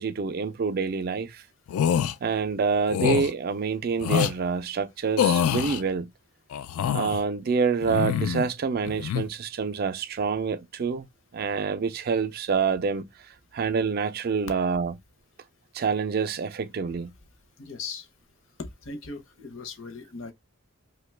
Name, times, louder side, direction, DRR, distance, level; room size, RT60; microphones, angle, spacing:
voice 1, 0.0-1.4 2.2-6.1 6.9-11.1 11.3-13.1 13.5-14.9 15.7-17.1, right 5 dB, 45° right, 0.4 m, -27 dB
sound 1, 1.7-2.1 2.9-3.3 4.0-4.3 5.2-5.8 6.5-7.2 7.8-8.5 8.8-9.2, left 8 dB, 85° left, 0.3 m, -25 dB
voice 2, 17.6-18.1 18.8-20.3, left 4 dB, 60° left, 0.7 m, -38 dB
2.8 x 2.2 x 3.2 m
head